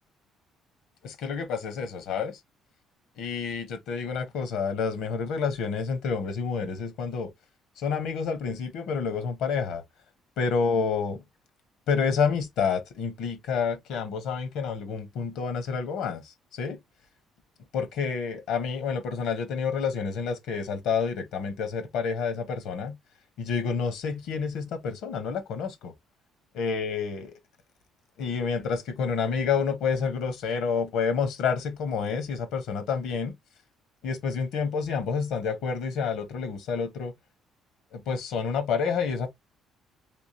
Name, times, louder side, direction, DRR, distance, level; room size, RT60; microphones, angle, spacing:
voice 1, 1.0-2.4 3.2-7.3 7.8-9.8 10.4-11.2 11.9-16.8 17.7-23.0 23.4-25.9 26.5-27.3 28.2-33.3 34.0-37.1 37.9-39.3, left 5 dB, 80° left, 1.1 m, -29 dB
3.6 x 2.9 x 2.8 m
cardioid pair, 90°, 0 cm